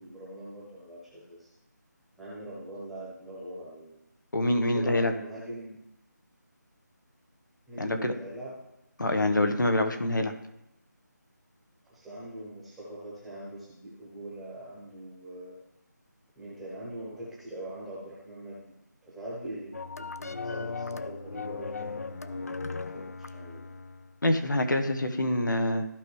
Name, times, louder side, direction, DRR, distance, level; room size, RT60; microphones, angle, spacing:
voice 1, 0.0-1.5 2.2-4.0 4.6-5.8 7.7-8.6 11.9-15.5 16.4-18.6 19.0-23.6, right 1 dB, ahead, -8 dB, 0.9 m, -42 dB
voice 2, 4.3-5.1 7.8-8.1 9.0-10.3 24.2-25.8, left 1 dB, 90° left, 5 dB, 1.3 m, -25 dB
sound 1, 19.7-24.1, left 4 dB, 55° left, 0.5 m, -37 dB
14.5 x 4.9 x 3.2 m, 0.86 s
figure-of-eight pair, 170°, 10 cm